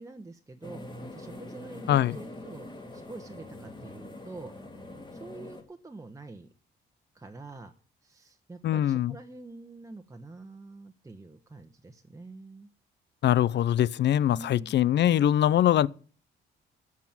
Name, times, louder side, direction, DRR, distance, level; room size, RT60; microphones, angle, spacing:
voice 1, 0.0-4.5 5.1-6.5 7.1-7.7 8.0-12.7 14.3-14.7, right 3 dB, 15° right, 1.2 m, -46 dB
sound 1, 0.6-5.6, left 1 dB, 20° left, 2.6 m, -44 dB
voice 2, 8.6-9.1 13.2-15.9, left 11 dB, 60° left, 0.6 m, -23 dB
13.0 x 6.2 x 8.9 m
cardioid pair, 90°, 20 cm